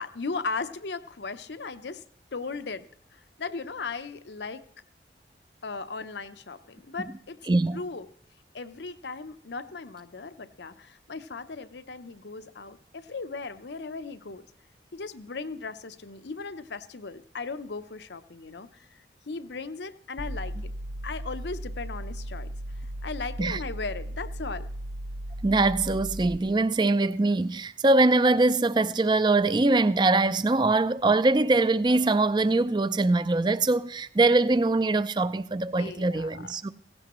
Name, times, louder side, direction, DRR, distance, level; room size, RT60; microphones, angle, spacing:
voice 1, 0.0-2.0 2.3-2.8 3.1-4.7 5.6-7.4 7.7-8.1 8.5-14.5 14.9-20.7 21.0-22.5 22.8-24.7 35.8-36.5, left 4 dB, 75° left, 0.8 m, -37 dB
voice 2, 7.5-7.8 23.4-23.6 25.4-36.7, right 2 dB, 25° right, 0.4 m, -23 dB
sound 1, 20.2-26.4, right 1 dB, 80° right, 1.2 m, -36 dB
17.0 x 16.0 x 3.1 m
head